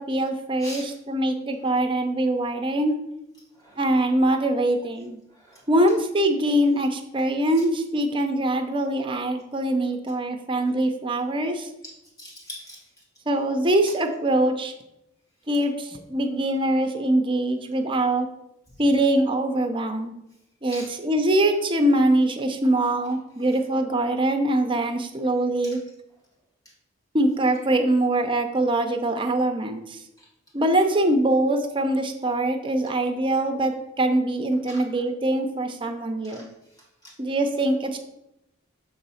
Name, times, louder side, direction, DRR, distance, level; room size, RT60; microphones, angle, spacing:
voice 1, 0.0-2.9 3.8-5.2 5.7-11.7 13.3-14.7 15.5-18.3 18.8-20.1 20.6-25.8 27.1-30.0 30.5-36.5 37.2-38.0, right 1 dB, 25° right, 5 dB, 0.6 m, -23 dB
voice 2, 0.6-0.9 3.5-3.8 5.3-5.7 11.8-12.8 18.7-18.8 20.7-20.9 25.6-25.8 30.2-30.3 34.7-34.9 36.2-37.1, equal, 15° left, -4 dB, 1.8 m, -43 dB
7.0 x 3.9 x 5.5 m, 0.86 s
head